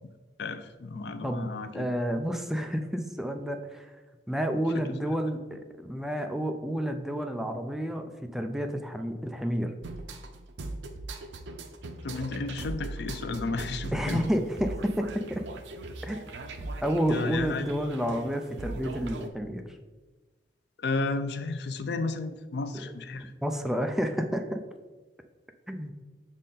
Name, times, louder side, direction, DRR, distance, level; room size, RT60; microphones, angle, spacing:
voice 1, 0.4-1.9 4.5-4.8 12.0-14.2 17.1-17.6 20.8-23.3, left 3 dB, 70° left, 10 dB, 0.4 m, -33 dB
voice 2, 1.7-3.9 4.3-9.7 13.9-15.4 16.0-16.2 16.8-19.8 22.7-22.8 23.2-24.6 25.7-25.9, equal, ahead, 5 dB, 0.4 m, -30 dB
sound 1, 9.8-19.3, right 2 dB, 85° right, 0.6 m, -40 dB
6.3 x 4.1 x 3.7 m, 1.2 s
head